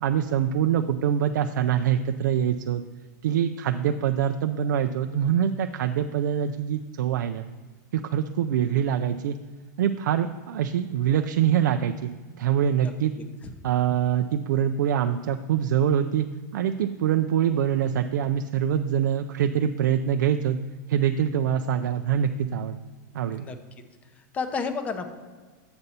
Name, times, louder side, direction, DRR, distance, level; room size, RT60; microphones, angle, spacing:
voice 1, 0.0-2.8 3.2-7.5 7.9-9.4 9.8-12.1 12.4-13.1 13.6-16.3 16.5-20.6 20.9-22.8 23.1-23.5, right 9 dB, 85° right, 6 dB, 0.4 m, -24 dB
voice 2, 24.2-25.1, left 4 dB, 15° left, 8 dB, 0.5 m, -31 dB
7.8 x 6.7 x 4.2 m, 1.4 s
supercardioid pair, 165°, 10 cm